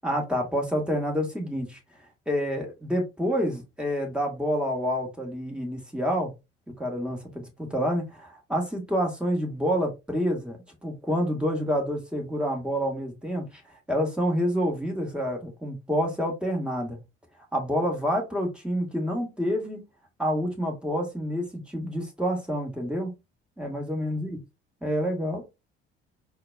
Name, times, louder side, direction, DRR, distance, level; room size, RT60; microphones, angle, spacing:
voice 1, 0.0-1.8 2.3-6.3 6.7-13.5 13.9-17.0 17.5-19.8 20.2-23.1 23.6-24.4 24.8-25.4, equal, 5° right, 1.4 m, -28 dB
4.3 x 2.3 x 2.3 m
hypercardioid pair, 55°, 31 cm